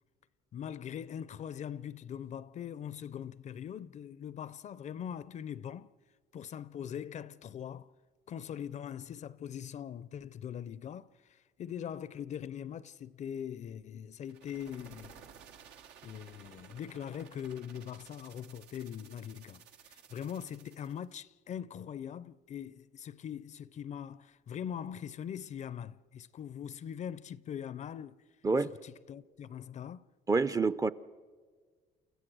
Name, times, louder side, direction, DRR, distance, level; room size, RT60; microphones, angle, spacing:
voice 1, 0.5-5.9 6.3-7.9 8.3-15.2 16.0-28.2 28.6-30.1, left 9 dB, 45° left, 0.5 m, -42 dB
sound 1, 14.2-21.1, right 8 dB, 85° right, 1.2 m, -56 dB
voice 2, 30.3-30.9, right 4 dB, 20° right, 0.5 m, -27 dB
29.0 x 15.0 x 6.2 m
cardioid pair, 110°, 17 cm